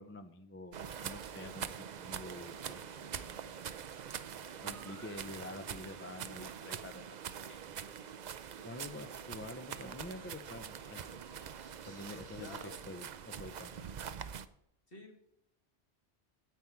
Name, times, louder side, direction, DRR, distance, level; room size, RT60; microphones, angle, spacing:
voice 1, 0.0-1.7 1.9-3.5 4.6-7.6 8.6-11.2 11.9-12.6 12.9-13.8, left 1 dB, 15° left, 8 dB, 0.5 m, -48 dB
sound 1, 0.7-14.5, right 8 dB, 55° right, 0.6 m, -44 dB
sound 2, 4.4-12.9, right 2 dB, 80° right, 2.3 m, -64 dB
voice 2, 12.4-12.9 14.9-15.2, left 3 dB, 55° left, -1 dB, 2.3 m, -50 dB
9.4 x 8.8 x 4.6 m, 0.81 s
omnidirectional pair, 1.1 m